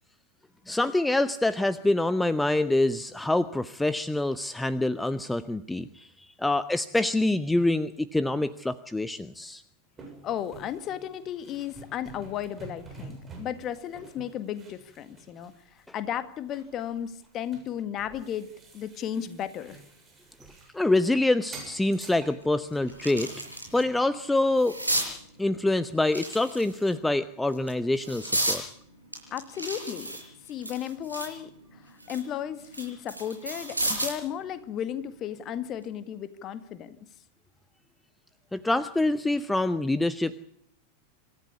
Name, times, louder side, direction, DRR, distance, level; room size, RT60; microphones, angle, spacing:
voice 1, 0.7-6.1 6.4-9.6 20.7-23.3 23.7-24.7 25.4-28.6 38.5-40.3, left 2 dB, 5° left, 15 dB, 0.8 m, -26 dB
sound 1, 10.0-16.1 16.5-21.1 21.5-24.0, right 3 dB, 20° right, 7.3 m, -49 dB
voice 2, 10.2-19.8 29.3-30.2 30.5-37.0, left 10 dB, 30° left, 12 dB, 1.8 m, -34 dB
sound 2, 21.8-21.9 22.4-23.8 24.2-25.1 26.0-26.9 27.5-28.6 29.1-31.4 31.8-34.2 35.6-35.8, right 1 dB, 85° right, 5.6 m, -32 dB
26.0 x 14.0 x 8.5 m, 0.70 s
figure-of-eight pair, 90°, 0 cm